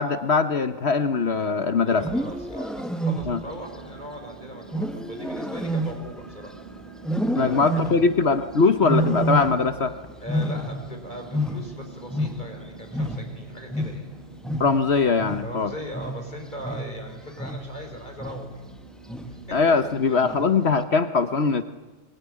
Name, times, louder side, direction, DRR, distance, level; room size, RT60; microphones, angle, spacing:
voice 1, 0.0-2.1 3.3-3.4 7.4-9.9 14.6-15.7 19.5-21.6, left 4 dB, 55° left, 10 dB, 1.3 m, -21 dB
voice 2, 1.8-6.5 7.3-7.6 10.2-14.1 15.4-18.6 19.3-19.4 19.8-19.9, equal, 35° left, 4 dB, 5.2 m, -39 dB
Wild animals, 1.9-3.6 4.7-6.6 7.0-8.2 8.8-9.9 10.1-12.7 12.9-17.8 18.2-18.6 19.1-19.5 20.2-20.7, right 1 dB, ahead, 1.4 m, -29 dB
sound 1, 3.1-20.0, right 4 dB, 45° right, 2.3 m, -46 dB
24.0 x 23.5 x 9.9 m, 1.2 s
omnidirectional pair, 1.3 m